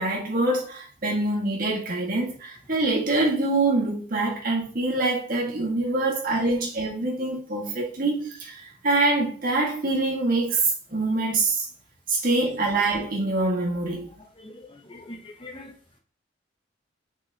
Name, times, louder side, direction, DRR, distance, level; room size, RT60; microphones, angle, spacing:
voice 1, 0.0-10.6 10.9-11.6 12.1-14.1, right 2 dB, 45° right, 1.9 m, -25 dB
voice 2, 13.9-15.7, left 1 dB, 25° left, 1.0 m, -44 dB
6.2 x 5.5 x 2.9 m
head